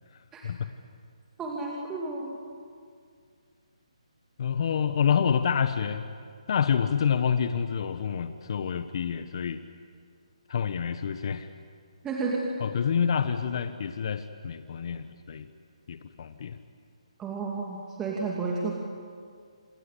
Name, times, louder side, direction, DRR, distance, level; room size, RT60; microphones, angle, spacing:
voice 1, 1.4-2.4 12.0-12.4 17.2-18.7, right 4 dB, 10° right, -2 dB, 2.5 m, -31 dB
voice 2, 4.4-6.0 6.5-9.6 10.5-11.5 12.6-15.5 15.9-16.6, left 7 dB, 50° left, 10 dB, 1.1 m, -27 dB
27.0 x 20.5 x 8.4 m, 2.2 s
hypercardioid pair, 150°, 4 cm